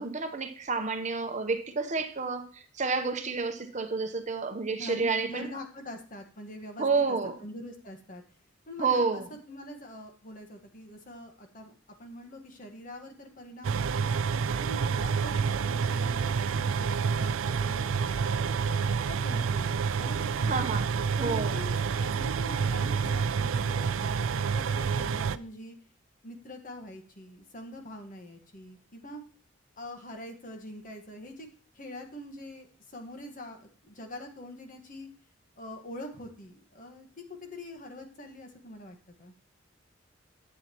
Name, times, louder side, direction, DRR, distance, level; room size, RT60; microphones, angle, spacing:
voice 1, 0.0-5.5 6.8-7.4 8.8-9.3 20.5-20.9 21.2-21.6, right 4 dB, 40° right, 7 dB, 0.8 m, -29 dB
voice 2, 4.7-8.2 8.7-9.2 9.5-11.7 12.0-14.1 14.6-20.7 21.2-25.8 26.2-29.2 29.8-31.5 31.7-35.1 35.6-39.3, left 1 dB, 45° left, 4 dB, 1.4 m, -44 dB
sound 1, 13.6-25.4, right 6 dB, 85° right, 0.4 m, -28 dB
11.0 x 8.3 x 3.0 m, 0.42 s
head